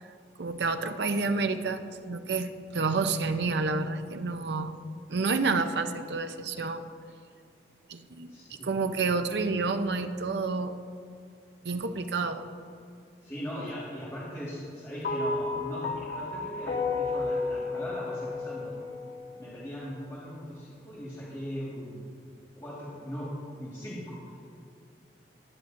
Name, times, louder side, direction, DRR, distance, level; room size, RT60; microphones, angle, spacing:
voice 1, 0.4-4.7 5.1-6.8 7.9-8.3 8.6-10.7 11.6-12.5, right 4 dB, 70° right, 9 dB, 0.6 m, -29 dB
voice 2, 8.3-8.8 13.2-18.8 19.4-22.0 22.6-23.3 23.6-24.2, equal, 15° left, -9 dB, 1.7 m, -39 dB
sound 1, 15.0-19.5, left 3 dB, 70° left, 1.4 m, -32 dB
20.0 x 9.4 x 2.6 m, 2.3 s
head